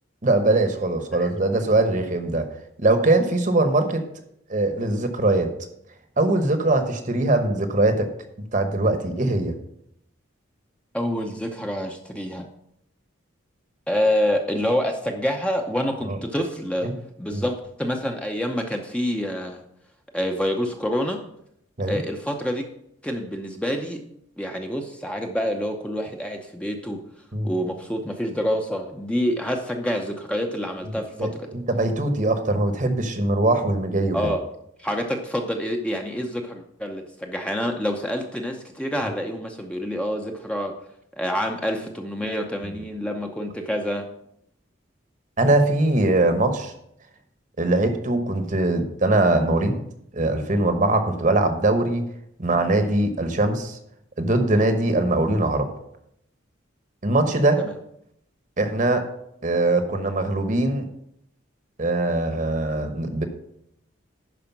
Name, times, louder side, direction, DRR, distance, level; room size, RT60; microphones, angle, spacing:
voice 1, 0.2-2.5 2.8-4.0 4.5-5.5 6.2-8.0 8.5-9.5 16.1-16.2 16.8-16.9 17.3-17.4 21.8-22.0 27.3-27.5 31.2-34.2 45.4-46.7 47.6-49.8 50.1-52.0 52.4-53.8 54.2-55.7 57.0-57.6 58.6-59.1 59.4-60.8 61.8-63.2, right 2 dB, 40° right, 8 dB, 1.1 m, -21 dB
voice 2, 10.9-12.4 13.9-16.9 17.2-19.6 20.1-21.2 21.9-22.6 23.0-24.0 24.4-27.0 27.4-31.5 34.1-34.4 34.8-40.7 41.2-44.1 57.6-57.7, equal, 5° left, 2 dB, 0.7 m, -27 dB
11.0 x 4.9 x 5.9 m, 0.75 s
head